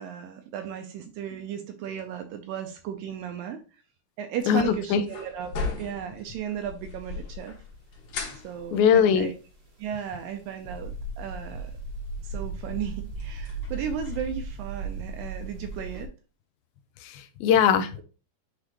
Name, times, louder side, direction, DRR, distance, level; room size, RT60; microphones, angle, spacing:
voice 1, 0.0-3.8 4.2-5.5 5.8-7.6 8.4-9.3 9.8-11.7 12.2-16.1, right 8 dB, 80° right, 2.1 m, -35 dB
sound 1, 4.4-16.0, left 4 dB, 65° left, 2.9 m, -41 dB
voice 2, 4.5-5.0 8.7-9.3 17.0-18.0, left 8 dB, 80° left, 2.4 m, -21 dB
sound 2, 10.6-16.1, right 3 dB, 60° right, 1.0 m, -36 dB
9.7 x 3.3 x 2.9 m
omnidirectional pair, 4.4 m